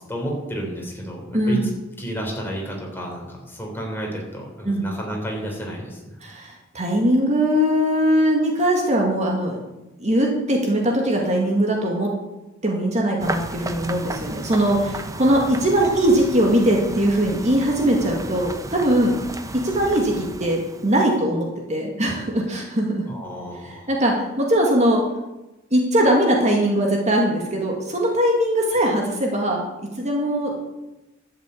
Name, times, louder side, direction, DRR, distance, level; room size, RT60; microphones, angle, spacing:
voice 1, 0.1-1.6 2.0-6.2 23.1-23.9, equal, 10° left, -1 dB, 3.6 m, -31 dB
voice 2, 1.3-1.7 4.6-4.9 6.2-9.6 10.0-12.1 12.6-19.2 19.5-23.0 23.6-25.0 25.7-29.6 30.0-30.7, right 1 dB, 35° right, 0 dB, 2.0 m, -21 dB
sound 1, 13.2-21.1, right 2 dB, 15° right, 0.8 m, -34 dB
12.0 x 6.7 x 8.5 m, 1.0 s
head